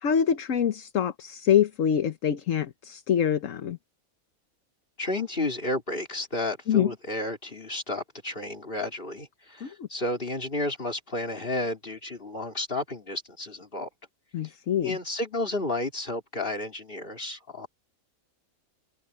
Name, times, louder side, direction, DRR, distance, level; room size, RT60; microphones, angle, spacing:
voice 1, 0.0-3.8 6.7-6.9 9.6-9.9 14.3-15.0, left 8 dB, 60° left, 1.3 m, -25 dB
voice 2, 5.0-13.9 14.8-17.7, left 2 dB, 35° left, 4.1 m, -32 dB
omnidirectional pair, 1.6 m